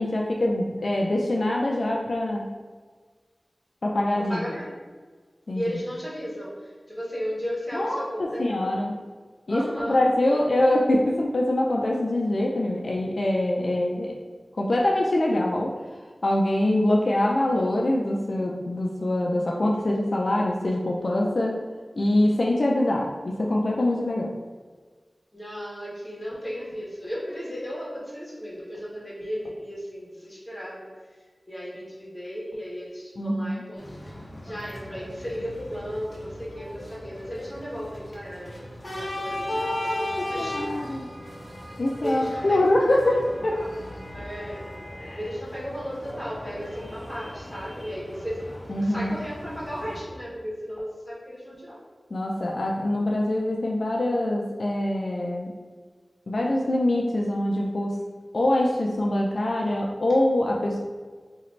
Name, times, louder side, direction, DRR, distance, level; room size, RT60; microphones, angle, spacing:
voice 1, 0.0-2.4 3.8-4.4 5.5-5.6 7.7-8.9 9.5-14.1 14.6-15.7 16.2-21.6 22.0-24.3 33.2-33.6 39.5-41.1 41.8-43.5 45.0-45.2 48.7-49.2 52.1-55.5 56.3-58.0 58.3-60.8, left 1 dB, 65° left, -1 dB, 0.4 m, -24 dB
voice 2, 4.1-4.7 5.5-8.8 9.5-10.0 10.3-10.4 25.3-30.9 31.5-33.9 34.4-38.6 38.8-40.6 42.0-43.7 44.1-44.7 45.2-48.5 48.8-51.8, equal, 15° left, -6 dB, 1.4 m, -35 dB
sound 1, 33.7-50.0, left 1 dB, 40° left, 0.9 m, -38 dB
2.9 x 2.7 x 4.3 m, 1.5 s
wide cardioid pair, 50°, 0 cm